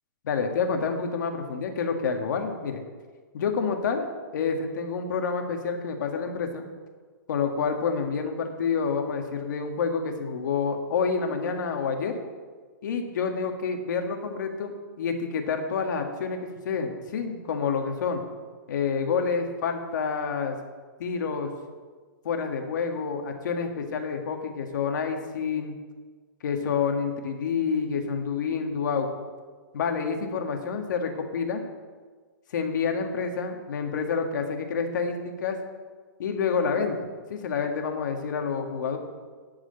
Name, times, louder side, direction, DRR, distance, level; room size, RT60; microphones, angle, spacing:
voice 1, 0.2-2.8 3.3-6.7 7.3-12.2 12.8-18.2 18.7-20.6 21.0-21.5 22.2-25.7 26.4-29.1 29.7-31.6 32.5-35.6 36.2-39.0, left 5 dB, 65° left, 4 dB, 1.7 m, -28 dB
12.0 x 4.9 x 8.6 m, 1.5 s
hypercardioid pair, 155°, 11 cm